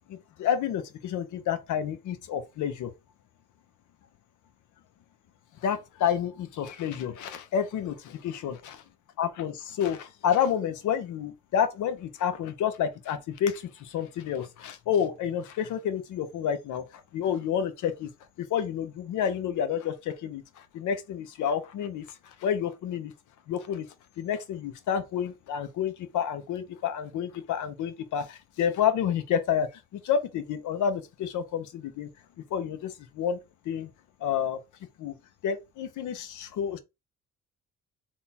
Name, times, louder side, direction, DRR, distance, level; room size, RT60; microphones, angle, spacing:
voice 1, 0.1-2.9 5.6-8.8 9.2-18.1 18.4-23.1 23.5-23.9 24.2-32.1 32.5-33.4 33.6-33.9 34.2-34.6 35.0-35.1 35.4-36.8, left 8 dB, 80° left, 0.8 m, -29 dB
3.6 x 2.4 x 4.1 m
cardioid pair, 90°, 30 cm